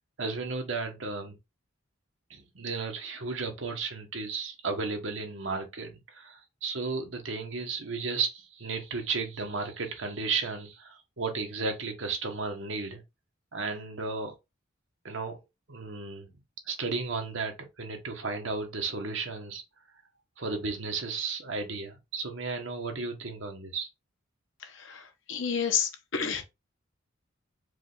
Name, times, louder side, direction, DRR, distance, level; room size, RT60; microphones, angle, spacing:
voice 1, 0.2-1.3 2.3-13.0 13.5-14.3 15.0-15.4 15.7-16.3 16.7-19.6 20.4-23.9, right 4 dB, 65° right, 1.2 m, -34 dB
voice 2, 25.3-26.4, left 7 dB, 65° left, 0.9 m, -29 dB
4.8 x 2.4 x 3.9 m
head